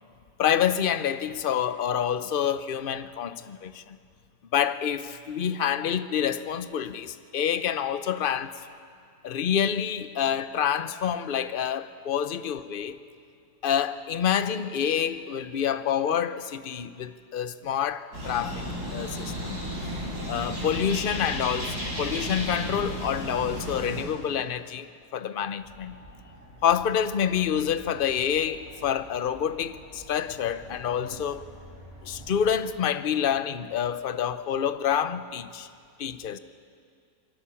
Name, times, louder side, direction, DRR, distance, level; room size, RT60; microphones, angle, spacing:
voice 1, 0.4-4.0 4.5-8.5 9.2-13.0 13.6-18.7 18.9-19.6 20.3-24.9 25.1-26.0 26.6-31.4 32.0-35.7 36.0-36.4, left 9 dB, 45° left, 12 dB, 0.7 m, -27 dB
sound 1, 18.1-24.0, equal, 80° right, 7.7 m, -33 dB
sound 2, 25.6-32.6, right 1 dB, 40° right, 6.7 m, -49 dB
27.0 x 20.0 x 7.1 m, 2.3 s
omnidirectional pair, 1.7 m